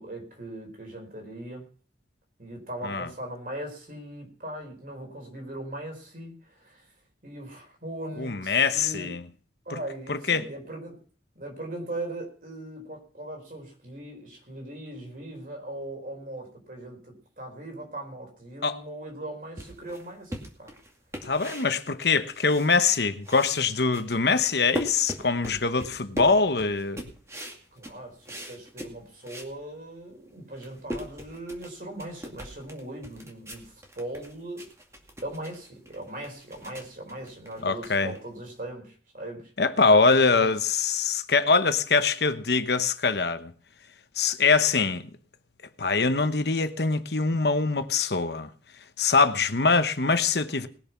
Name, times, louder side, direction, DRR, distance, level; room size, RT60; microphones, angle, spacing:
voice 1, 0.0-1.7 2.4-6.9 7.2-9.1 9.6-11.0 11.3-20.8 27.7-34.6 35.2-39.5 40.4-40.5, right 1 dB, 50° right, 4.5 m, -39 dB
voice 2, 8.2-9.2 10.1-10.4 18.6-18.8 21.2-27.0 37.6-38.1 39.6-43.5 44.2-45.1 45.8-48.5 49.0-50.7, left 4 dB, 65° left, 1.0 m, -23 dB
sound 1, 19.6-23.0 23.2-29.5 30.0-30.1 30.4-38.5, equal, 15° right, 2.2 m, -40 dB
20.0 x 7.0 x 5.9 m
head